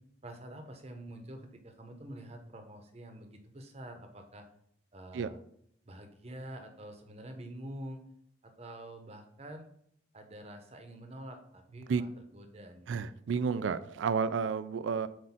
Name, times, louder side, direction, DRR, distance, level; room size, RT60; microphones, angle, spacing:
voice 1, 0.2-4.5 4.9-5.4 5.8-8.0 8.4-9.7 10.1-12.9, right 1 dB, 35° right, 5 dB, 0.8 m, -47 dB
voice 2, 12.9-15.1, right 5 dB, 85° right, 14 dB, 0.4 m, -31 dB
7.7 x 2.6 x 5.7 m, 0.70 s
head